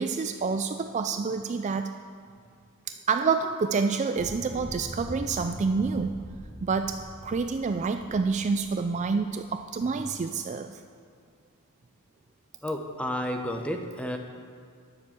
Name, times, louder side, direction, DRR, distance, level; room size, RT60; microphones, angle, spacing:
voice 1, 0.0-1.9 2.9-6.2 6.6-10.8, right 4 dB, 35° right, 8 dB, 0.3 m, -28 dB
sound 1, 4.2-9.8, equal, 60° right, 2.0 m, -42 dB
voice 2, 12.6-14.2, left 1 dB, 5° left, 4 dB, 0.7 m, -31 dB
9.8 x 6.8 x 7.5 m, 2.3 s
head